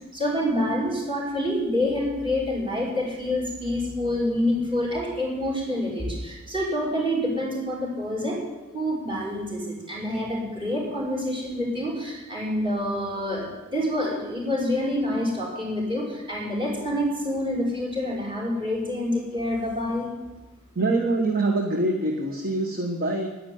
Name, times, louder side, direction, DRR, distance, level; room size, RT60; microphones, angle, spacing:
voice 1, 0.1-8.4 8.7-20.1, left 1 dB, 25° right, -5 dB, 5.8 m, -27 dB
voice 2, 20.7-23.3, right 2 dB, 40° right, 2 dB, 1.3 m, -24 dB
11.0 x 10.5 x 9.4 m, 1.1 s
head